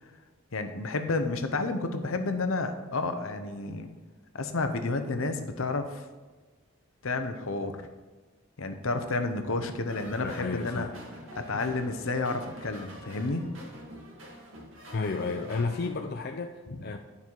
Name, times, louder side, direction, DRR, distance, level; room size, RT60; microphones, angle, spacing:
voice 1, 0.5-3.9 4.3-6.0 7.0-7.7 8.6-10.9 11.3-13.5 16.7-16.8, left 3 dB, 75° left, 7 dB, 0.8 m, -31 dB
sound 1, 9.9-15.9, equal, 65° right, 2.0 m, -46 dB
voice 2, 10.2-11.0 11.5-11.6 14.9-17.0, left 4 dB, 50° left, 4 dB, 0.4 m, -32 dB
9.8 x 5.5 x 4.7 m, 1.3 s
head